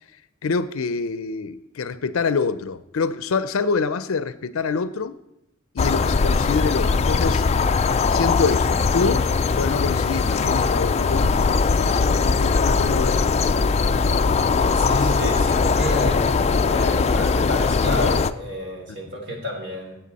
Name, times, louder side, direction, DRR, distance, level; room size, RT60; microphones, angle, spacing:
voice 1, 0.4-5.2 5.7-7.4 8.1-9.3 9.6-13.4, left 4 dB, 85° left, 14 dB, 0.5 m, -26 dB
sound 1, 5.8-18.3, left 4 dB, 30° left, 0.4 m, -20 dB
voice 2, 14.7-16.4 16.6-19.9, left 1 dB, 60° right, 1 dB, 2.9 m, -30 dB
16.0 x 7.9 x 4.1 m, 0.87 s
head